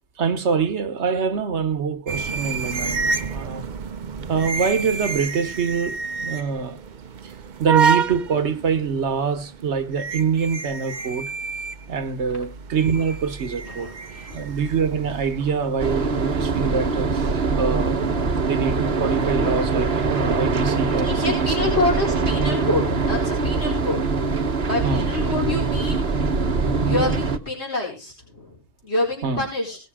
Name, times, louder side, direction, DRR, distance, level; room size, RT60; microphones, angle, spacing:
voice 1, 0.2-3.6 4.3-6.8 7.2-7.3 7.6-11.3 11.9-13.9 14.3-18.0 18.4-21.6 24.8-25.1 29.2-29.5, right 6 dB, 85° right, 1.4 m, -25 dB
sound 1, 2.1-16.9, right 5 dB, 50° right, 0.8 m, -29 dB
voice 2, 13.6-14.4 21.0-24.2 24.6-26.1 26.4-26.5 26.8-29.8, left 2 dB, 75° left, 5.1 m, -27 dB
sound 2, 15.8-27.4, right 4 dB, 65° right, 1.5 m, -23 dB
18.5 x 6.8 x 4.9 m
omnidirectional pair, 1.1 m